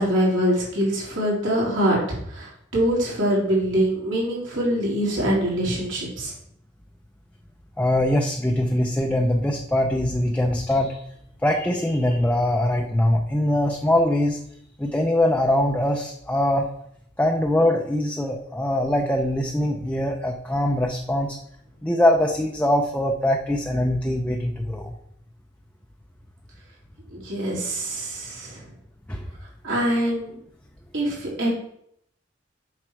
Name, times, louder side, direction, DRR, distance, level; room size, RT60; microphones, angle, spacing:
voice 1, 0.0-2.0 2.3-6.3 27.1-28.6 29.6-30.4 30.9-31.5, equal, 70° right, -5 dB, 3.4 m, -24 dB
voice 2, 7.8-11.0 11.4-14.4 14.8-16.7 17.2-21.4 21.8-24.9 29.1-29.2, left 1 dB, 5° left, 1 dB, 0.5 m, -22 dB
7.7 x 6.1 x 4.6 m, 0.72 s
head